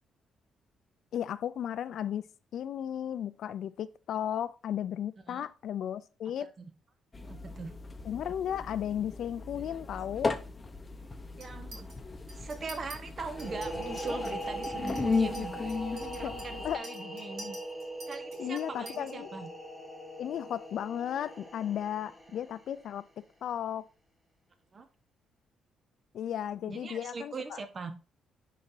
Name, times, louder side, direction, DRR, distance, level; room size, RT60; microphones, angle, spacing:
voice 1, 1.1-2.2 2.5-6.5 8.0-10.4 16.2-16.3 16.6-16.9 18.4-19.3 20.2-23.1 23.4-23.9 26.1-27.6, left 10 dB, 70° left, 0.3 m, -35 dB
sound 1, 7.1-16.8, left 4 dB, 25° left, 0.7 m, -36 dB
voice 2, 7.2-7.7 11.4-11.9 12.4-17.6 18.1-19.5 24.7-24.9 26.6-27.9, right 4 dB, 40° right, 0.9 m, -41 dB
Chink clink, 11.4-12.0 12.3-13.0 13.4-19.1, right 1 dB, 70° right, 2.6 m, -49 dB
sound 2, 13.3-22.8, equal, ahead, 3.1 m, -40 dB
10.5 x 4.0 x 2.7 m
cardioid pair, 90°, 0 cm